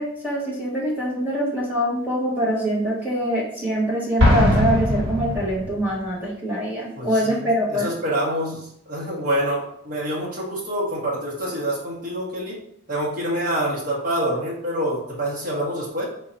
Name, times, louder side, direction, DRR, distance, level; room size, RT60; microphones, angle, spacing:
voice 1, 0.0-7.9, equal, 10° right, -5 dB, 1.1 m, -24 dB
Explosion, 4.2-6.0, left 1 dB, 65° right, 1.1 m, -20 dB
voice 2, 6.9-12.6 12.9-16.1, right 1 dB, 40° right, -5 dB, 1.5 m, -26 dB
4.1 x 2.8 x 4.0 m, 0.72 s
head